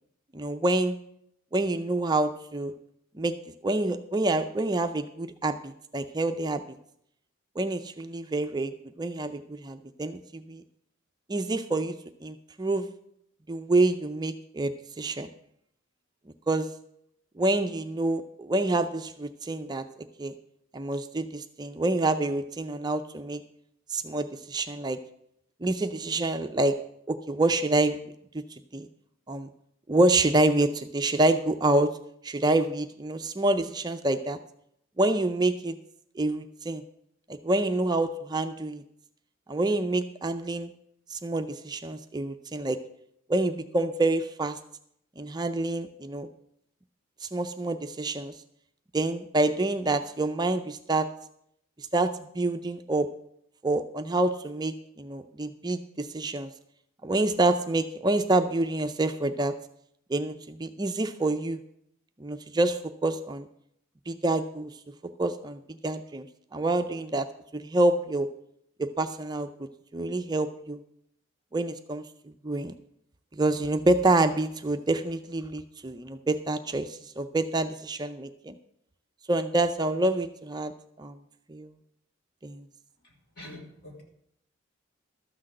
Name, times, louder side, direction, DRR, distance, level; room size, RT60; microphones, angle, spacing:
voice 1, 0.3-1.0 1.5-2.7 3.1-3.3 3.6-6.6 7.6-10.6 11.3-11.9 12.2-12.9 13.5-15.3 16.5-16.7 17.4-19.8 20.2-20.3 20.7-23.4 23.9-25.0 25.6-26.8 27.1-28.0 28.3-28.4 28.7-28.9 29.3-29.5 29.9-32.0 32.2-34.4 35.0-35.8 36.2-36.8 37.3-38.8 39.5-40.7 41.1-42.8 43.3-44.6 45.2-46.3 47.2-48.3 48.9-51.1 51.8-53.1 53.6-56.5 57.0-59.6 60.1-61.6 62.2-63.5 64.1-64.7 65.0-66.3 66.5-67.3 67.5-68.3 68.8-70.8 71.5-72.1 72.4-72.7 73.4-78.6 79.3-80.7 81.0-81.2 81.5-81.7 82.4-82.6, right 2 dB, 20° right, 7 dB, 0.5 m, -27 dB
voice 2, 83.4-84.0, left 1 dB, 55° left, -1 dB, 3.3 m, -44 dB
13.0 x 6.1 x 7.7 m, 0.72 s
head